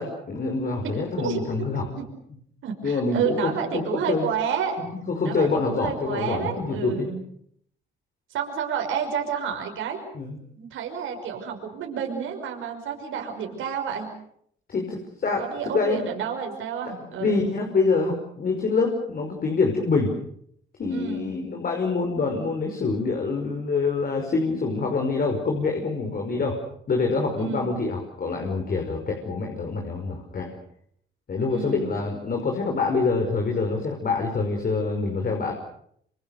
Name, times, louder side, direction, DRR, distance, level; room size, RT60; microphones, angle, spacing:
voice 1, 0.0-1.9 2.8-4.3 5.1-7.1 10.1-10.4 14.7-16.0 17.2-20.1 20.8-26.6 26.9-30.5 31.3-35.5, left 4 dB, 50° left, 2 dB, 5.6 m, -26 dB
voice 2, 0.8-1.7 2.0-2.1 2.6-4.8 5.2-7.2 8.3-10.0 10.5-14.1 15.2-17.4 20.9-21.2 27.4-27.7 31.5-31.9, right 7 dB, 85° right, 2 dB, 5.8 m, -30 dB
27.0 x 26.5 x 6.8 m, 0.68 s
cardioid pair, 90°, 20 cm